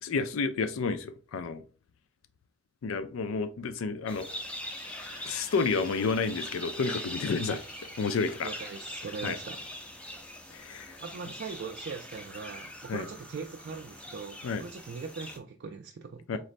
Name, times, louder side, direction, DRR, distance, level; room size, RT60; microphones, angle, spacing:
voice 1, 0.0-1.6 2.8-4.3 5.2-7.6 8.0-8.5 9.2-9.4 10.5-11.0 12.9-13.0 14.4-14.6 16.3-16.4, left 4 dB, 80° left, 0.4 m, -30 dB
Bird, 4.1-10.2 10.7-11.1, left 2 dB, 20° left, 0.9 m, -51 dB
sound 1, 4.1-15.4, equal, 5° left, 0.4 m, -42 dB
voice 2, 8.4-9.6 11.0-16.4, right 5 dB, 55° right, 0.4 m, -41 dB
3.9 x 3.1 x 2.5 m
head